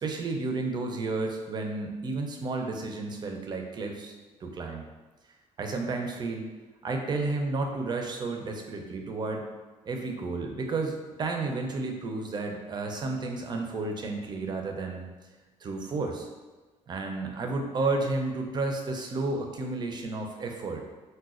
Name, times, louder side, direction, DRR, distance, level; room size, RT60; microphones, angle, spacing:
voice 1, 0.0-4.1 4.4-4.9 5.6-6.5 6.8-9.4 9.9-15.1 15.6-16.3 16.9-20.8, right 3 dB, 35° right, 3 dB, 0.4 m, -32 dB
4.0 x 2.2 x 2.4 m, 1.2 s
cardioid pair, 125°, 14 cm